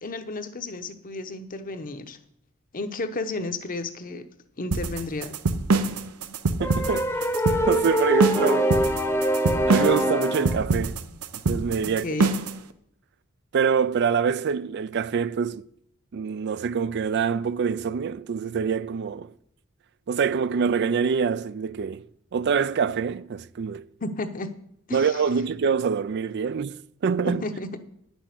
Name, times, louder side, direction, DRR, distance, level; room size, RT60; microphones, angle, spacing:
voice 1, 0.0-2.2 2.7-4.2 4.6-5.3 12.0-12.3 24.0-24.5 24.9-25.1 27.2-27.7, left 2 dB, 40° left, 0.9 m, -32 dB
sound 1, 4.7-12.6, right 3 dB, 90° right, 0.8 m, -25 dB
sound 2, 6.6-10.6, equal, 10° left, 0.9 m, -24 dB
voice 2, 6.6-7.1 7.7-8.7 9.7-11.0 11.5-12.0 13.5-15.6 16.1-19.3 20.1-22.0 22.3-23.8 24.9-27.4, right 6 dB, 50° right, 0.4 m, -25 dB
10.0 x 6.3 x 8.1 m
head